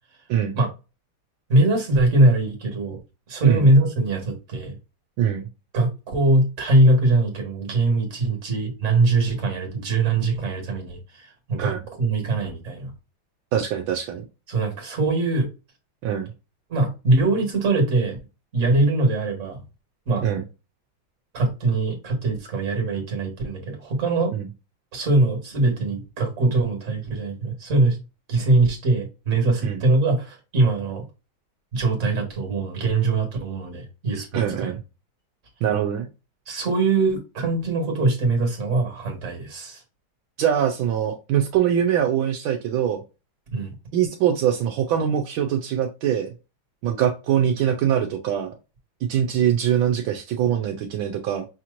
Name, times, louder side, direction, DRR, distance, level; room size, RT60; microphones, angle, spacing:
voice 1, 1.5-3.0 3.3-4.8 5.7-11.7 12.0-12.9 14.5-15.5 16.7-18.2 18.5-19.6 20.1-20.2 21.3-24.3 24.9-28.0 28.3-31.0 31.7-34.8 36.5-39.8 43.5-43.7, right 2 dB, 40° right, 1.7 m, -22 dB
voice 2, 5.2-5.5 11.6-11.8 13.5-14.2 16.0-16.3 20.2-20.4 24.3-24.5 29.6-29.8 34.3-34.8 35.6-36.1 40.4-43.0 43.9-46.3 46.8-48.5 49.1-51.5, right 9 dB, 80° right, 1.4 m, -23 dB
5.7 x 2.9 x 2.5 m
omnidirectional pair, 2.2 m